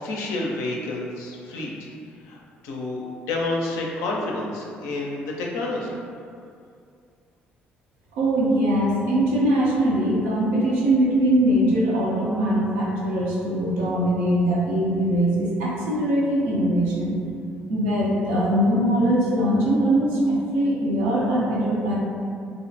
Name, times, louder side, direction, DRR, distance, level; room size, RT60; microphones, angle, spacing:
voice 1, 0.0-1.9 2.3-6.0, left 2 dB, 75° left, -1 dB, 0.4 m, -29 dB
voice 2, 8.1-17.2 17.7-22.0, right 1 dB, 80° right, -6 dB, 0.6 m, -21 dB
2.5 x 2.1 x 2.6 m, 2.3 s
hypercardioid pair, 55°, 5 cm